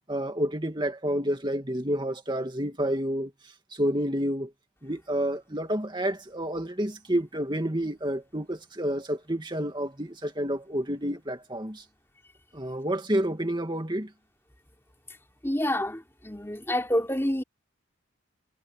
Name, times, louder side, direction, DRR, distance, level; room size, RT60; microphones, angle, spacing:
voice 1, 0.1-3.3 3.7-4.5 4.8-11.8 12.5-14.1, equal, 20° right, 2.4 m, -29 dB
voice 2, 15.4-17.4, left 1 dB, 10° left, 3.4 m, -28 dB
head